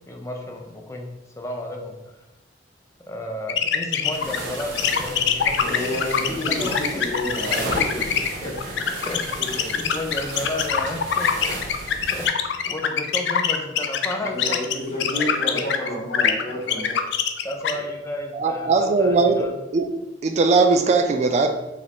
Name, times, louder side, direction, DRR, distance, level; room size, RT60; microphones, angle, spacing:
voice 1, 0.1-1.1 1.4-2.0 3.1-5.8 6.0-7.0 7.7-7.8 8.4-9.4 9.7-15.7 16.0-16.5 17.4-19.6, left 1 dB, 15° left, 1 dB, 0.5 m, -33 dB
sound 1, 3.5-17.7, left 8 dB, 70° left, 0.4 m, -23 dB
sound 2, 4.1-12.3, right 2 dB, 90° right, 0.8 m, -34 dB
voice 2, 5.6-8.5 9.4-9.9 14.2-17.0 17.7-17.8, left 1 dB, 40° left, -4 dB, 1.3 m, -30 dB
voice 3, 18.3-19.4 19.7-19.9 20.2-21.5, right 4 dB, 35° right, 5 dB, 0.3 m, -19 dB
5.0 x 2.6 x 3.5 m, 1.0 s
head